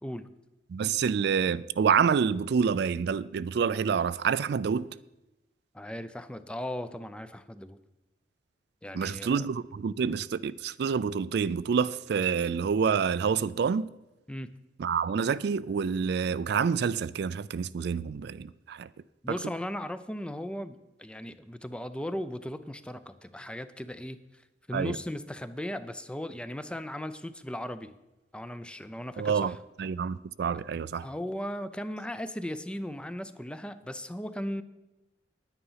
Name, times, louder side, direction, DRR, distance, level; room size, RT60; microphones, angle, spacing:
voice 1, 0.7-4.9 8.9-13.9 14.8-18.9 19.3-19.4 24.7-25.0 29.2-29.5 29.8-31.1, right 6 dB, 65° right, 0.3 m, -27 dB
voice 2, 5.7-7.8 8.8-9.5 14.3-14.5 19.2-24.4 24.7-27.9 28.3-29.5 31.0-34.6, left 1 dB, 5° left, 0.5 m, -37 dB
10.0 x 9.6 x 5.6 m
head